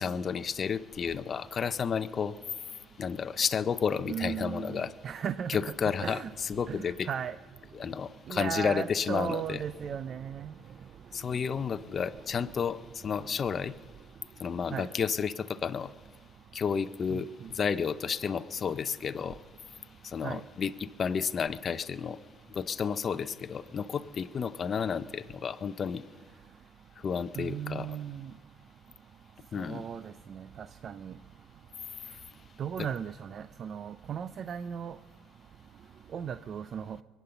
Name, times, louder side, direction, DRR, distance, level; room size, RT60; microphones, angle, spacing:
voice 1, 0.0-2.3 3.0-4.9 5.5-7.1 7.7-9.6 11.1-12.8 13.0-13.7 14.4-15.9 16.5-19.4 20.0-22.2 22.5-26.0 27.0-27.9 29.5-29.8 32.8-32.9, left 6 dB, 40° left, 13 dB, 0.6 m, -31 dB
voice 2, 4.1-5.5 6.0-6.3 6.7-7.4 8.3-10.5 14.7-14.9 17.1-17.5 20.2-20.4 27.4-28.3 29.6-31.1 32.6-35.0 36.1-37.0, right 8 dB, 50° right, 12 dB, 0.5 m, -36 dB
22.0 x 9.3 x 6.9 m, 1.4 s
supercardioid pair, 95°, 0 cm